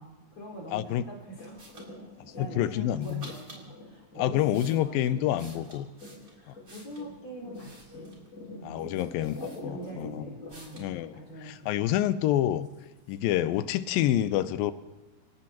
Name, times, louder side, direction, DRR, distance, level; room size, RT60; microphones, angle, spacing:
voice 1, 0.0-1.7 2.2-5.9 6.2-8.2 8.5-8.9 9.2-11.8, equal, 35° left, -3 dB, 5.6 m, -45 dB
voice 2, 0.7-1.0 2.2-3.3 4.2-5.9 8.6-10.3 10.8-12.7 13.1-14.7, left 12 dB, 90° left, 13 dB, 2.5 m, -28 dB
sound 1, 1.3-11.5 11.9-12.0, left 2 dB, 20° left, 7.1 m, -45 dB
sound 2, 1.6-1.9 3.0-3.7 4.2-7.1 7.5-8.3 8.9-9.0 9.2-10.1 10.5-10.9, right 2 dB, 25° right, 3.6 m, -51 dB
27.0 x 16.5 x 3.0 m, 1.1 s
omnidirectional pair, 4.1 m